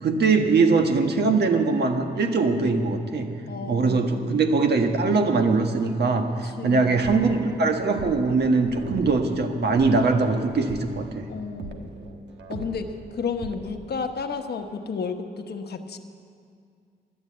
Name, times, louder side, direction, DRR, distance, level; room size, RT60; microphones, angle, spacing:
voice 1, 0.0-3.3 3.7-11.2, right 4 dB, 70° right, 5 dB, 1.3 m, -22 dB
voice 2, 2.4-2.8 3.5-4.1 6.4-6.9 11.3-11.9 12.5-16.0, left 5 dB, 65° left, 6 dB, 1.0 m, -32 dB
sound 1, 6.8-13.9, right 2 dB, 90° right, 1.3 m, -41 dB
12.0 x 9.8 x 8.6 m, 2.2 s
cardioid pair, 75°, 18 cm